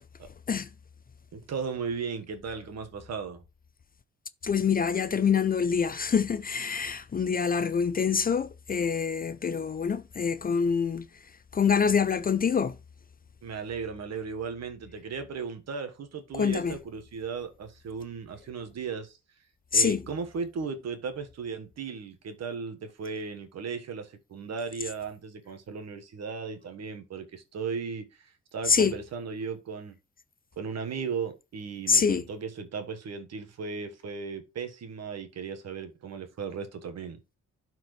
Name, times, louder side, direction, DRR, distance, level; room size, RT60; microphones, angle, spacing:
voice 1, 1.3-3.4 13.4-19.2 19.7-30.0 30.6-37.2, right 5 dB, 60° right, 1.4 m, -36 dB
voice 2, 4.4-11.1 11.5-12.8 16.3-16.8 19.7-20.0 28.7-28.9 31.9-32.2, left 6 dB, 30° left, 0.5 m, -25 dB
12.0 x 4.5 x 3.2 m
cardioid pair, 90°, 30 cm